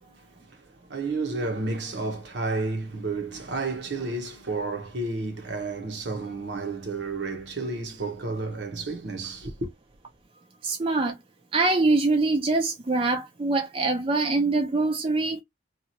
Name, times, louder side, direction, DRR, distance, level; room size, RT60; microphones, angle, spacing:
voice 1, 0.0-9.7, right 3 dB, 65° right, 0.8 m, -31 dB
voice 2, 10.6-11.2 11.5-15.4, right 3 dB, 30° right, 0.4 m, -24 dB
2.9 x 2.3 x 2.7 m
head